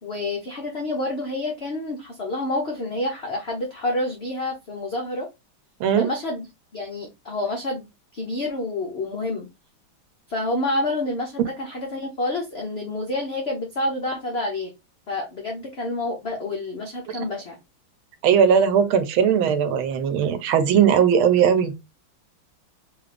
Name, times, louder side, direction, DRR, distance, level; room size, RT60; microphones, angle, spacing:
voice 1, 0.0-5.3 6.0-6.5 6.7-7.8 8.1-9.5 10.3-14.7 15.1-17.6, left 2 dB, 80° left, 0.5 m, -28 dB
voice 2, 18.2-21.7, right 7 dB, 85° right, 1.5 m, -19 dB
3.7 x 2.5 x 3.2 m
omnidirectional pair, 2.2 m